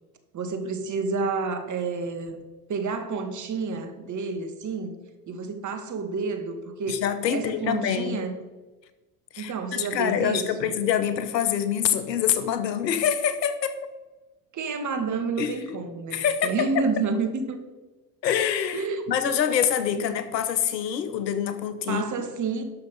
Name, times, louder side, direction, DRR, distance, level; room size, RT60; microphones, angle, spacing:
voice 1, 0.3-2.4 2.7-5.0 5.3-7.0 7.3-8.4 9.4-10.7 14.5-17.6 18.7-19.0 21.9-22.6, right 4 dB, 35° right, 7 dB, 1.9 m, -29 dB
voice 2, 6.9-8.3 9.3-13.8 15.4-15.8 16.1-16.8 18.2-22.0, left 9 dB, 85° left, 12 dB, 1.1 m, -26 dB
12.0 x 6.5 x 5.4 m, 1.2 s
hypercardioid pair, 75°, 49 cm